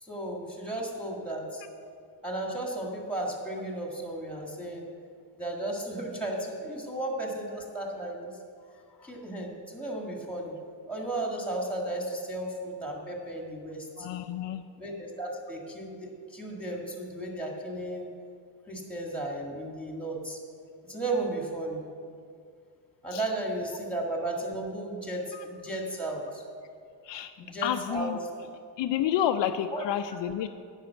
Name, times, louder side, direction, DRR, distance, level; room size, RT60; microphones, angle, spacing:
voice 1, 0.0-1.6 2.2-4.9 5.4-8.4 9.0-10.5 10.9-14.1 14.8-18.1 18.7-20.4 20.9-21.8 23.0-26.4 27.4-28.2 29.7-29.8, right 1 dB, 5° left, 0 dB, 1.7 m, -34 dB
voice 2, 14.0-14.6 23.1-23.2 25.3-25.4 27.0-27.3 27.6-28.2 28.8-30.5, left 10 dB, 70° left, 8 dB, 0.5 m, -29 dB
10.5 x 5.4 x 8.1 m, 2.2 s
cardioid pair, 140°, 46 cm